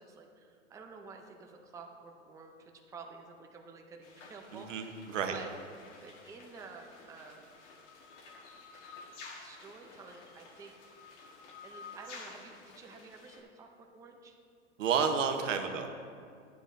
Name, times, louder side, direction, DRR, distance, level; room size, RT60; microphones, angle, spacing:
voice 1, 0.0-5.1 5.3-5.5 6.0-7.5 9.4-10.9 11.6-14.4, right 4 dB, 10° right, 2 dB, 0.5 m, -51 dB
sound 1, 4.0-13.4, left 4 dB, 65° left, 1.7 m, -52 dB
voice 2, 4.5-5.3 14.8-15.9, right 6 dB, 85° right, 5 dB, 1.1 m, -31 dB
11.5 x 8.4 x 2.6 m, 2.2 s
hypercardioid pair, 120°, 37 cm